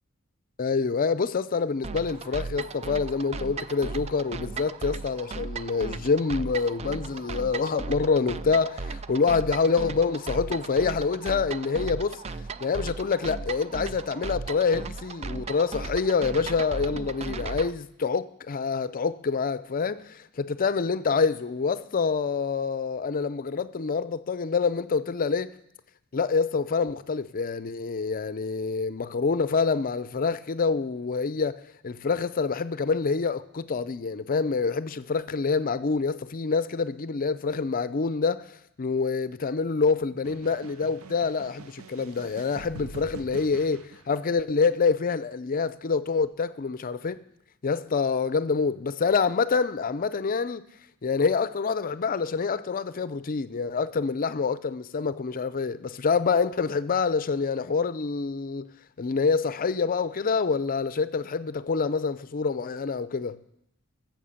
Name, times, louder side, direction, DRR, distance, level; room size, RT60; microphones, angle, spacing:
voice 1, 0.6-12.2 12.6-25.5 26.1-38.5 38.8-47.2 47.6-50.6 51.0-58.7 59.0-63.4, left 5 dB, 40° left, 0.5 m, -26 dB
sound 1, 1.8-17.7, right 4 dB, 30° right, 0.4 m, -36 dB
sound 2, 40.2-44.5, right 4 dB, 70° right, 0.6 m, -45 dB
12.5 x 7.5 x 7.1 m
head